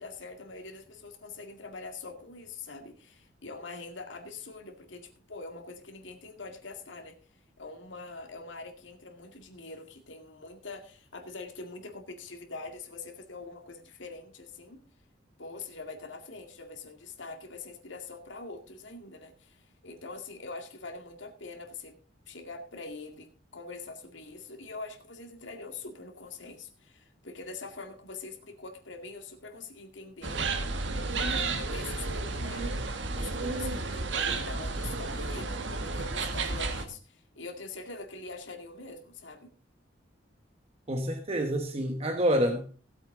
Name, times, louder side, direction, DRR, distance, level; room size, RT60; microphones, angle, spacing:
voice 1, 0.0-14.8 15.4-21.9 22.3-30.4 31.2-39.5, left 3 dB, 80° left, 2.1 m, -44 dB
sound 1, 30.2-36.8, right 3 dB, 75° right, 1.5 m, -32 dB
voice 2, 40.9-42.7, equal, 30° right, 1.2 m, -27 dB
16.5 x 8.3 x 3.8 m
head